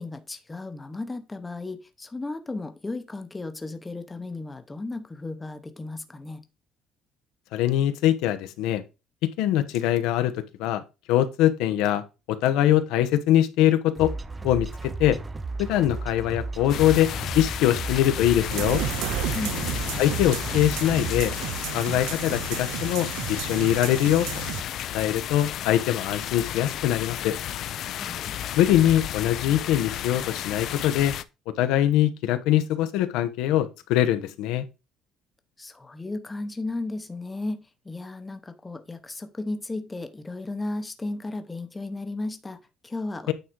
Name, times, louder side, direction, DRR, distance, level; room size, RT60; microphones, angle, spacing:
voice 1, 0.0-6.4 19.3-19.6 28.0-28.5 35.6-43.3, left 2 dB, 10° left, 0.8 m, -35 dB
voice 2, 7.5-8.8 9.4-10.8 11.1-14.1 14.4-15.2 15.6-17.1 17.3-18.8 20.0-21.3 21.7-24.3 24.9-27.4 28.6-31.1 31.5-34.7 43.3-43.4, left 12 dB, 90° left, 0.9 m, -23 dB
sound 1, 13.9-21.5, right 3 dB, 15° right, 0.4 m, -34 dB
sound 2, 16.7-31.2, left 11 dB, 50° left, 0.4 m, -33 dB
sound 3, 18.5-24.6, right 16 dB, 85° right, 0.3 m, -33 dB
9.1 x 3.8 x 4.5 m
cardioid pair, 160°, 0 cm